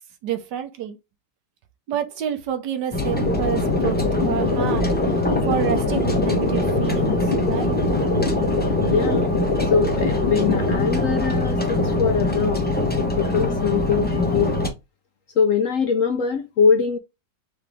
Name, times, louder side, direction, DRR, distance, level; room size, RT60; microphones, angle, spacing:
voice 1, 0.2-1.0 1.9-4.9 5.4-7.2 7.5-7.8, right 9 dB, 75° right, 1.4 m, -28 dB
sound 1, 2.9-14.7, left 2 dB, 10° left, 0.6 m, -23 dB
sound 2, 3.3-10.8, left 2 dB, 40° left, 1.0 m, -26 dB
voice 2, 8.8-9.3 9.7-14.6 15.4-17.0, left 6 dB, 65° left, 0.8 m, -22 dB
4.7 x 3.2 x 3.5 m
omnidirectional pair, 1.9 m